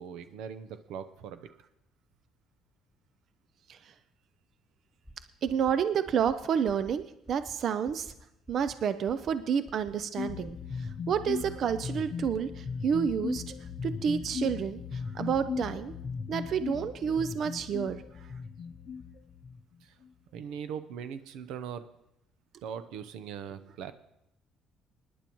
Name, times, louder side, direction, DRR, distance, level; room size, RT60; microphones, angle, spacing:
voice 1, 0.0-1.5 19.8-20.0 20.3-21.8 22.6-23.9, right 7 dB, 85° right, 11 dB, 0.7 m, -40 dB
sound 1, 5.0-5.1 5.4-5.7 6.0-6.3 6.6-6.9 7.2-7.5 7.8-8.1 8.5-8.7 9.0-9.3 9.6-9.9 10.2-10.5 10.8-11.1, equal, 10° right, 2.3 m, -50 dB
voice 2, 5.4-8.1 8.5-13.4 13.8-15.9 16.3-18.0, right 7 dB, 50° right, 12 dB, 0.5 m, -30 dB
sound 2, 10.2-19.8, left 6 dB, 45° left, 0.6 m, -37 dB
24.5 x 10.0 x 3.0 m, 0.84 s
cardioid pair, 135°, 0 cm